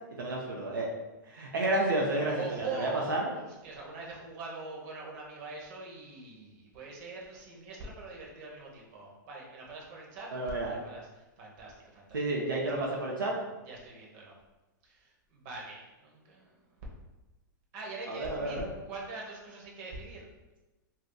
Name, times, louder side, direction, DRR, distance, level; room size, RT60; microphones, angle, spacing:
voice 1, 0.2-0.9 1.3-3.3 10.3-10.8 12.1-13.3 18.1-18.7, right 2 dB, 90° right, -2 dB, 0.6 m, -31 dB
voice 2, 2.3-11.1 11.4-12.2 12.7-12.8 13.7-14.4 14.8-16.6 17.7-18.6 18.9-20.2, right 3 dB, 50° right, -2 dB, 1.0 m, -43 dB
2.7 x 2.3 x 3.8 m, 1.1 s
hypercardioid pair, 120°, 11 cm